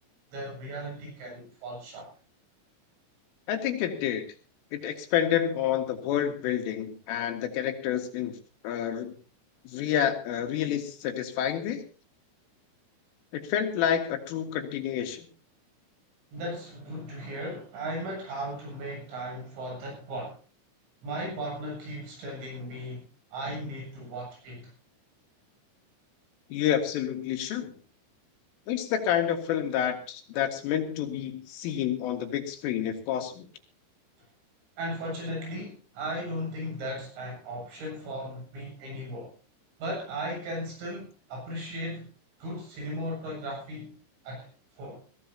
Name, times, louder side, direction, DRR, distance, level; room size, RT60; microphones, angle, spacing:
voice 1, 0.3-2.1 16.3-20.4 21.0-23.0 23.3-24.7 34.8-39.3 39.8-42.1 42.4-43.9 44.2-44.5 44.8-45.0, equal, 80° right, 0 dB, 10.5 m, -36 dB
voice 2, 3.5-4.2 4.7-8.3 8.6-9.1 9.7-11.8 13.3-15.3 26.5-27.7 28.7-33.5, left 10 dB, 85° left, 4 dB, 4.4 m, -29 dB
21.0 x 16.0 x 2.8 m, 0.37 s
omnidirectional pair, 5.6 m